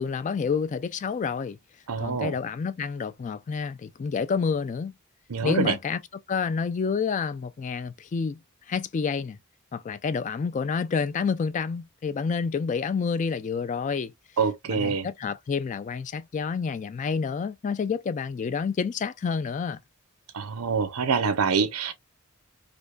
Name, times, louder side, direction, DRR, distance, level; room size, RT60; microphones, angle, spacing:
voice 1, 0.0-1.6 2.0-5.0 5.4-6.0 6.3-8.4 8.7-9.4 9.7-14.1 14.7-19.8, left 5 dB, 35° left, 0.3 m, -29 dB
voice 2, 1.9-2.3 5.3-5.8 14.4-15.1 20.3-21.9, right 5 dB, 75° right, 0.7 m, -25 dB
5.0 x 2.2 x 2.2 m
head